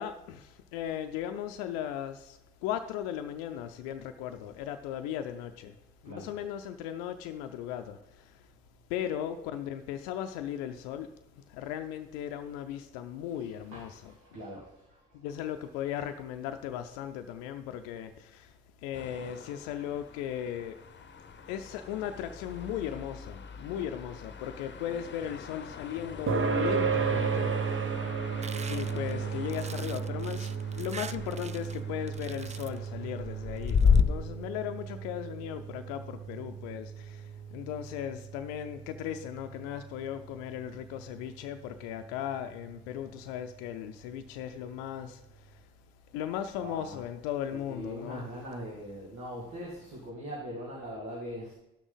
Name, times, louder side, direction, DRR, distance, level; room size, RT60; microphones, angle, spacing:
voice 1, 0.0-5.8 6.0-8.5 8.9-11.1 11.5-14.1 15.1-18.5 18.8-20.8 21.5-28.0 28.7-45.6 46.1-48.2, left 10 dB, 85° left, 8 dB, 0.5 m, -37 dB
voice 2, 6.0-6.4 9.0-9.1 13.2-15.8 46.6-47.1 47.5-51.5, equal, 70° right, -5 dB, 2.3 m, -42 dB
sound 1, 18.9-34.0, left 6 dB, 35° left, 0.9 m, -35 dB
sound 2, 26.3-41.2, right 5 dB, 40° right, 1.2 m, -34 dB
sound 3, 28.4-31.8 32.1-32.9 33.6-34.0, right 6 dB, 25° right, 0.3 m, -45 dB
11.5 x 6.2 x 4.0 m, 0.90 s
hypercardioid pair, 45°, 31 cm